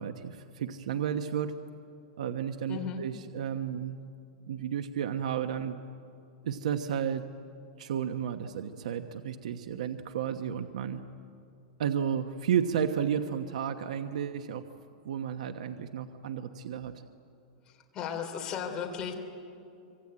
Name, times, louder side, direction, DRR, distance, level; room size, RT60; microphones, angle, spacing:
voice 1, 0.0-1.5 2.2-4.0 4.5-5.8 6.4-7.3 7.8-11.1 11.8-14.7 15.0-16.9, right 8 dB, 80° right, 7 dB, 1.2 m, -32 dB
voice 2, 2.7-3.0 17.6-19.1, left 7 dB, 20° left, 2 dB, 3.4 m, -35 dB
25.5 x 24.0 x 8.8 m, 2.6 s
supercardioid pair, 170°, 4 cm